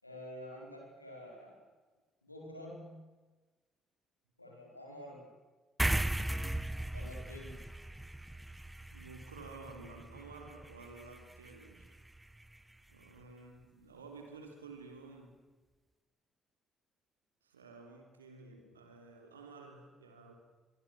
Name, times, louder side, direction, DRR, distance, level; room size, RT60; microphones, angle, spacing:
voice 1, 0.0-1.7 2.2-3.0 4.4-5.3 6.9-7.7, left 1 dB, 90° left, -1 dB, 4.7 m, -48 dB
sound 1, 5.8-12.6, right 1 dB, 10° right, 1.3 m, -38 dB
voice 2, 8.9-12.0 12.9-15.3 17.4-20.3, right 3 dB, 80° right, 4 dB, 3.4 m, -52 dB
24.0 x 23.5 x 6.3 m, 1.3 s
figure-of-eight pair, 45°, 0 cm